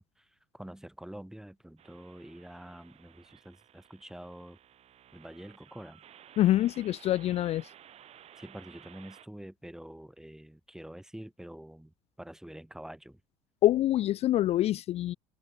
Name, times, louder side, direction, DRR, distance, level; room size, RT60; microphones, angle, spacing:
voice 1, 0.0-4.6 5.1-6.0 8.4-13.2, right 1 dB, 5° right, 0.9 m, -47 dB
sound 1, 1.8-9.3, right 10 dB, 50° right, 1.6 m, -56 dB
voice 2, 6.4-7.7 13.6-15.2, left 14 dB, 50° left, 0.3 m, -25 dB
open air
supercardioid pair, 75°, 14 cm